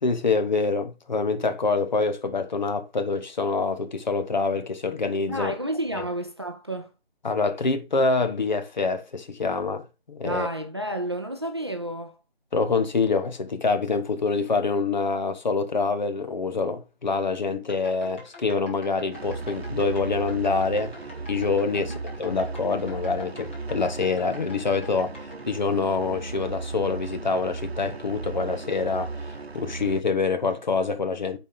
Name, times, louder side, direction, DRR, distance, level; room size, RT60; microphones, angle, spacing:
voice 1, 0.0-5.5 6.0-6.1 7.2-10.5 12.5-20.9 21.3-31.4, left 4 dB, 45° left, 1.0 m, -26 dB
voice 2, 5.3-6.9 10.2-12.2 21.7-22.0, right 1 dB, 25° right, 0.5 m, -31 dB
sound 1, 17.6-25.5, left 2 dB, 10° left, 0.7 m, -46 dB
sound 2, 19.1-30.0, right 3 dB, 85° right, 0.9 m, -36 dB
8.1 x 4.4 x 3.9 m
figure-of-eight pair, 155°, 31 cm